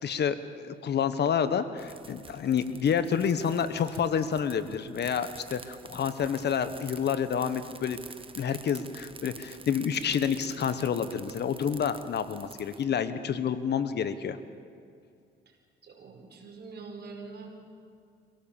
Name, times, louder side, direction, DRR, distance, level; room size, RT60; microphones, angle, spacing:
voice 1, 0.0-8.1 8.3-14.4, left 7 dB, 60° left, 12 dB, 1.2 m, -29 dB
sound 1, 1.8-12.8, right 4 dB, 25° right, 1.3 m, -48 dB
voice 2, 15.8-17.5, right 4 dB, 55° right, 2 dB, 4.9 m, -44 dB
25.0 x 17.5 x 7.2 m, 2.3 s
cardioid pair, 90°, 20 cm